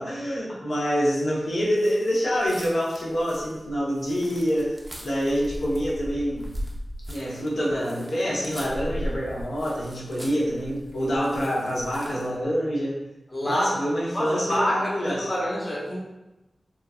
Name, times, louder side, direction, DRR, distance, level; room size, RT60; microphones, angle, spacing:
voice 1, 0.0-6.5 7.1-13.0 13.4-15.3, equal, 85° left, -6 dB, 0.8 m, -26 dB
sound 1, 1.7-12.4, equal, 15° right, 0.5 m, -39 dB
voice 2, 13.3-13.7 14.1-16.0, equal, 25° left, -6 dB, 0.7 m, -27 dB
2.9 x 2.3 x 2.3 m, 0.98 s
wide cardioid pair, 85°, 0 cm